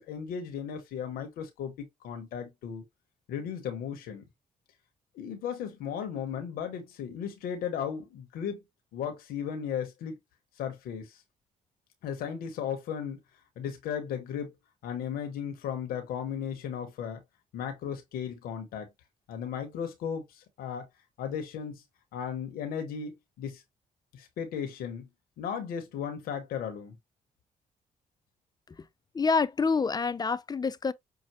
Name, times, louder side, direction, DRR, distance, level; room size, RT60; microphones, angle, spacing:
voice 1, 0.0-2.8 3.3-4.2 5.1-8.6 8.9-10.2 10.6-11.2 12.0-13.2 13.6-14.5 14.8-17.2 17.5-18.9 19.3-20.9 21.2-21.8 22.1-23.6 24.1-25.1 25.4-26.9, left 8 dB, 85° left, 0.9 m, -35 dB
voice 2, 29.1-30.9, left 4 dB, 25° left, 0.4 m, -27 dB
5.6 x 2.1 x 2.9 m
supercardioid pair, 65°, 15 cm